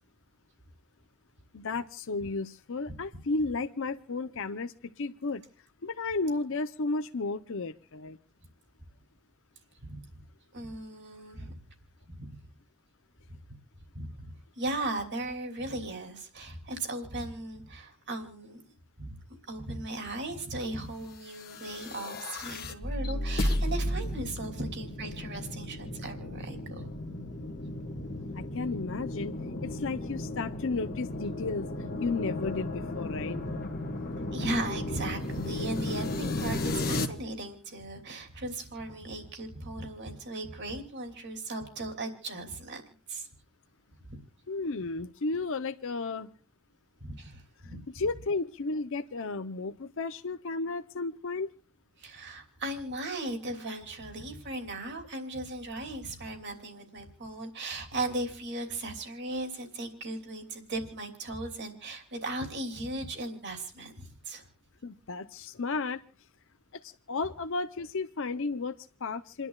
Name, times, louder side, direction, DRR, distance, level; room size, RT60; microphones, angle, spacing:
voice 1, 1.5-5.4 5.8-8.2 28.3-29.3 29.6-31.7 32.0-33.4 44.5-46.3 47.9-51.5 64.8-66.0 66.7-69.5, left 3 dB, 60° left, 8 dB, 0.7 m, -33 dB
voice 2, 10.5-11.6 12.2-12.3 13.9-14.1 14.6-18.6 19.0-19.2 19.5-26.9 27.9-28.0 34.2-42.8 43.1-43.3 44.1-44.2 47.0-47.8 52.0-64.4, right 2 dB, 55° right, 4 dB, 3.0 m, -37 dB
sound 1, 21.3-37.1, left 1 dB, 45° left, 1.6 m, -34 dB
29.0 x 11.0 x 2.3 m, 0.40 s
head